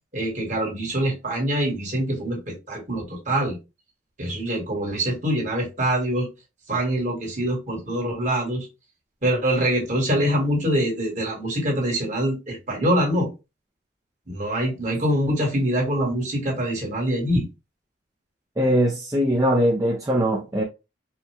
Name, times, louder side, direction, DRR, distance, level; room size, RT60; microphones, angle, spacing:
voice 1, 0.1-3.6 4.2-6.3 6.7-8.7 9.2-13.3 14.3-17.5, right 1 dB, 40° right, 1.8 m, -24 dB
voice 2, 18.6-20.6, equal, 15° right, 0.5 m, -21 dB
4.5 x 2.3 x 3.3 m
head